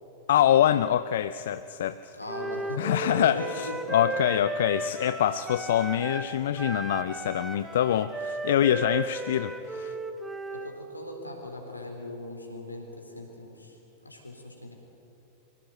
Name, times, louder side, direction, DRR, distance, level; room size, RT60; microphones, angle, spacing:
voice 1, 0.3-2.2 2.8-9.9, left 11 dB, 60° left, 14 dB, 0.5 m, -25 dB
voice 2, 2.1-3.7 10.5-13.8 14.0-14.7, left 1 dB, 85° left, 2 dB, 3.9 m, -39 dB
Wind instrument woodwind instrument, 2.3-6.3 6.6-10.8, right 2 dB, 10° right, 1.3 m, -35 dB
24.5 x 17.0 x 9.4 m, 2.9 s
figure-of-eight pair, 90°, 0 cm